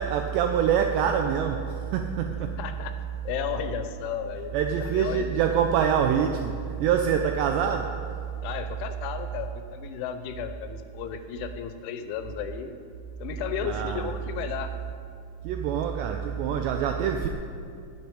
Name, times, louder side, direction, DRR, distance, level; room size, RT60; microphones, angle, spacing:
voice 1, 0.0-2.6 4.5-8.1 13.6-14.1 15.4-17.3, right 8 dB, 85° right, 4 dB, 2.5 m, -25 dB
voice 2, 2.6-2.9 3.3-5.3 8.4-12.7 13.2-14.7, left 8 dB, 80° left, 9 dB, 3.0 m, -34 dB
10.5 x 8.5 x 9.4 m, 2.3 s
omnidirectional pair, 5.6 m